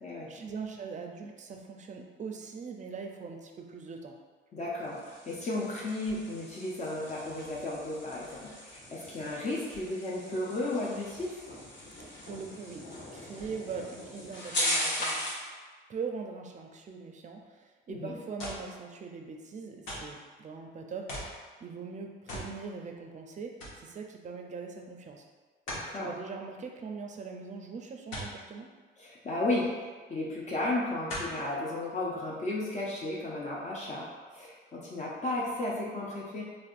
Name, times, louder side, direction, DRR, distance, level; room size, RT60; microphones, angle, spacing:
voice 1, 0.3-4.2 12.2-12.9 13.1-15.2 15.9-25.2 25.9-28.7, right 5 dB, 40° right, 3 dB, 0.4 m, -41 dB
voice 2, 4.5-11.4 17.9-18.2 25.7-26.1 29.0-29.7 30.1-36.4, left 2 dB, 35° left, -6 dB, 0.6 m, -34 dB
sound 1, 4.8-15.5, left 1 dB, 60° left, 1.1 m, -38 dB
sound 2, 18.4-18.7 19.9-20.2 21.1-21.4 22.3-22.6 22.9-23.0 23.6-23.8 25.7-25.9 28.1-28.4 29.8-29.9 31.1-31.4 32.1-32.2, equal, 80° left, 1.0 m, -38 dB
3.3 x 2.5 x 2.5 m, 1.4 s
cardioid pair, 90°, 20 cm